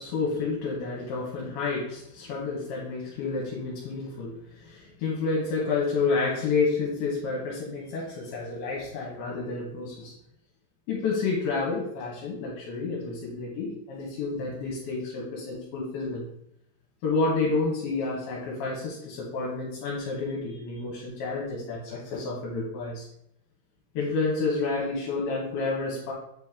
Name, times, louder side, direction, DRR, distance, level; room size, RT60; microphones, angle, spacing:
voice 1, 0.0-10.1 10.9-16.2 17.0-23.1 23.9-26.1, left 4 dB, 75° left, -4 dB, 3.0 m, -30 dB
7.9 x 4.2 x 3.5 m, 0.75 s
omnidirectional pair, 4.8 m